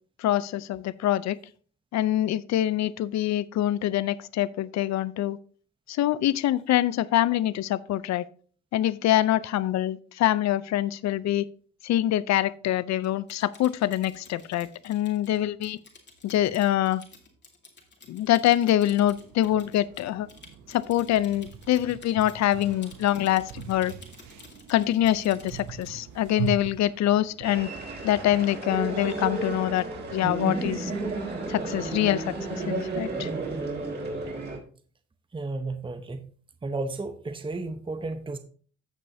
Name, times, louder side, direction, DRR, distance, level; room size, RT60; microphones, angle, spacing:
voice 1, 0.2-1.4 1.9-5.4 5.9-8.3 8.7-11.5 11.8-15.8 16.2-17.0 18.1-20.3 20.7-23.9 24.7-27.7 28.0-29.9 30.1-30.9 31.5-33.3, left 13 dB, 65° left, 0.5 m, -25 dB
Typing, 13.0-26.0, left 3 dB, 35° left, 2.5 m, -52 dB
sound 1, 18.8-28.4, right 8 dB, 75° right, 0.8 m, -41 dB
sound 2, 27.4-34.6, right 3 dB, 35° right, 3.9 m, -32 dB
voice 2, 35.3-36.3 36.6-38.4, right 3 dB, 15° right, 0.9 m, -33 dB
15.5 x 5.4 x 2.7 m
cardioid pair, 90°, 30 cm